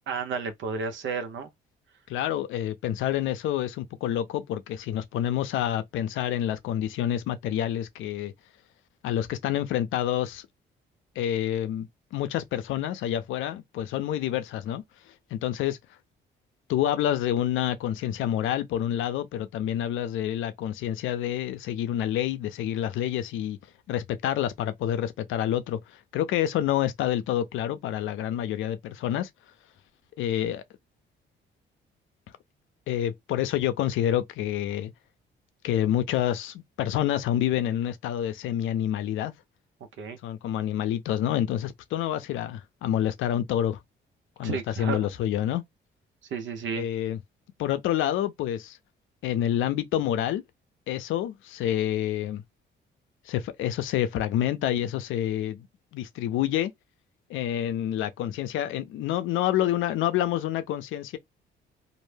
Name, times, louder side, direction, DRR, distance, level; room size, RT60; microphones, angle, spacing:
voice 1, 0.1-1.5 40.0-40.2 44.4-45.1 46.3-46.9, right 5 dB, 70° right, 0.8 m, -32 dB
voice 2, 2.1-8.3 9.0-10.5 11.2-14.8 15.3-15.8 16.7-23.6 23.9-29.3 30.2-30.6 32.9-34.9 35.6-39.3 40.2-43.8 44.4-45.6 46.8-47.2 47.6-48.8 49.2-50.4 50.9-52.4 53.3-55.7 55.9-56.7 57.3-61.2, left 11 dB, 85° left, 0.5 m, -28 dB
2.5 x 2.1 x 3.2 m
cardioid pair, 90°, 20 cm